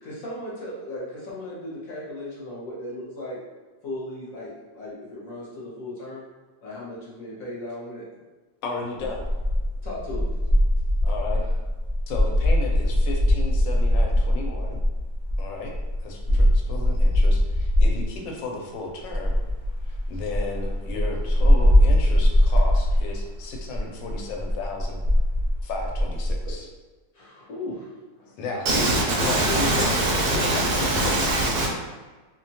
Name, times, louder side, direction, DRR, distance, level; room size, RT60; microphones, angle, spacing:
voice 1, 0.0-3.4 3.8-6.3 6.6-8.0 9.8-10.3 16.3-16.4 27.1-28.2 28.5-28.7 29.4-29.5, left 1 dB, 55° left, -7 dB, 1.1 m, -36 dB
voice 2, 8.6-9.3 11.0-11.4 12.1-14.8 15.4-15.7 16.0-19.4 19.9-25.0 25.6-26.7 28.4-29.0 29.2-30.0 30.3-31.5, left 3 dB, 90° left, 1 dB, 1.3 m, -34 dB
sound 1, 9.0-18.2 19.0-26.6, left 1 dB, 50° right, 0.6 m, -21 dB
voice 3, 28.7-31.7, right 1 dB, 70° right, -3 dB, 1.0 m, -22 dB
2.9 x 2.1 x 2.7 m, 1.3 s
omnidirectional pair, 1.9 m